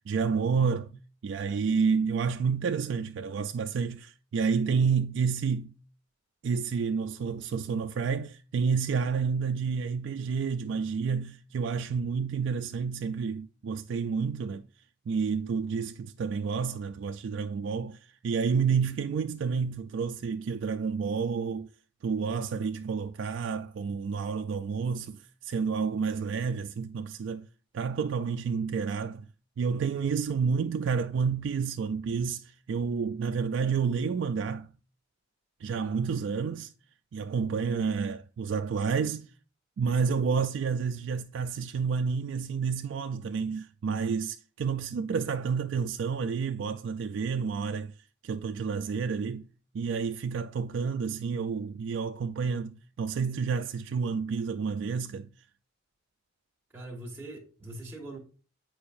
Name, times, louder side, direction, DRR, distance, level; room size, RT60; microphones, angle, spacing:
voice 1, 0.1-5.7 6.4-14.7 15.1-21.7 22.0-27.5 27.7-29.3 29.6-34.7 35.6-36.7 37.1-39.3 39.8-47.9 48.2-49.5 49.7-55.3, right 5 dB, 65° right, 0.3 m, -30 dB
voice 2, 56.7-58.2, right 1 dB, 10° right, 1.5 m, -42 dB
8.6 x 4.6 x 2.6 m
head